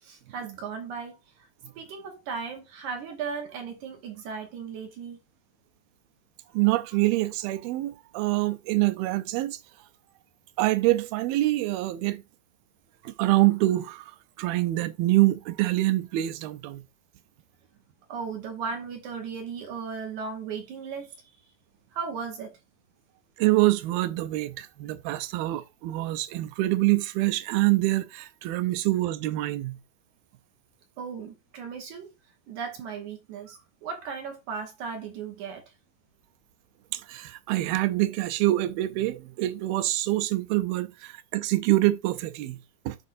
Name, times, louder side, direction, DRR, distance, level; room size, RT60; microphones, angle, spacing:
voice 1, 0.0-1.5 1.7-5.2 13.0-13.1 18.1-21.5 21.9-22.6 31.0-32.1 32.5-35.7, right 6 dB, 65° right, 2.3 m, -36 dB
voice 2, 6.5-9.6 10.6-12.2 13.1-14.1 14.4-16.8 23.4-29.8 36.9-43.0, right 17 dB, 90° right, 2.5 m, -25 dB
12.0 x 4.2 x 2.6 m
omnidirectional pair, 4.1 m